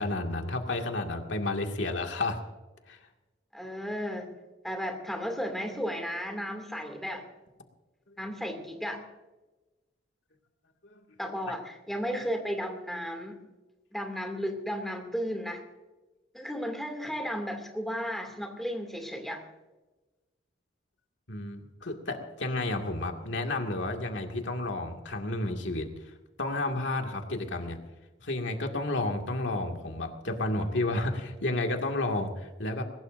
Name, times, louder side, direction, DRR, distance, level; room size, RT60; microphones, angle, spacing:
voice 1, 0.0-2.4 2.9-3.0 10.8-11.0 11.5-11.6 21.3-26.1 26.4-27.8 28.2-32.8, left 2 dB, 75° left, 3 dB, 2.1 m, -31 dB
voice 2, 3.5-4.4 4.6-7.2 8.2-9.0 11.2-13.4 13.9-15.6 16.3-19.4, equal, ahead, 3 dB, 2.4 m, -34 dB
21.5 x 19.5 x 2.6 m, 1.1 s
head